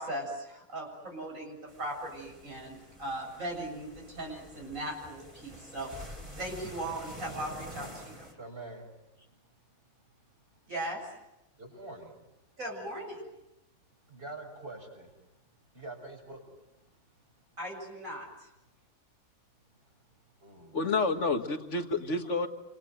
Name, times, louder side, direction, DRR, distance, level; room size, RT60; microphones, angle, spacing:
voice 1, 0.0-8.3 10.7-11.1 12.6-13.3 17.6-18.5, right 1 dB, 70° right, 7.6 m, -38 dB
sound 1, 1.7-8.3, equal, 25° right, 4.2 m, -48 dB
voice 2, 8.3-8.9 11.6-12.2 14.1-15.1 15.7-16.4 20.4-20.8 22.2-22.5, right 2 dB, 40° right, 7.1 m, -45 dB
voice 3, 20.7-22.5, left 3 dB, 55° left, 2.2 m, -29 dB
28.5 x 27.0 x 7.8 m
omnidirectional pair, 1.5 m